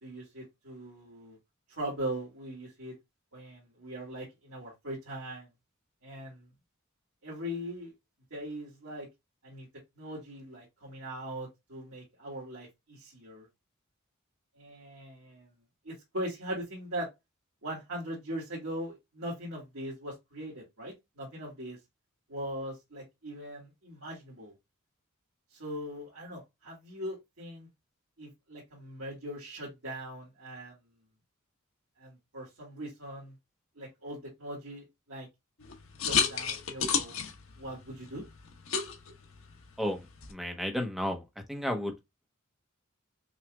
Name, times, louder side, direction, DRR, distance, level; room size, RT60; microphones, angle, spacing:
voice 1, 0.0-1.4 1.7-3.0 3.3-5.5 6.0-6.5 7.2-7.9 8.3-9.1 9.4-9.7 10.0-13.5 14.6-15.5 15.8-17.1 17.6-21.8 22.3-24.5 25.5-27.7 28.2-30.8 32.0-33.4 33.8-35.3 36.0-37.2 37.6-38.2, right 1 dB, 75° right, 2.0 m, -40 dB
sound 1, 35.6-40.3, left 7 dB, 75° left, 1.0 m, -33 dB
voice 2, 39.8-41.2 41.5-41.9, equal, ahead, 0.9 m, -33 dB
5.9 x 2.5 x 2.2 m
head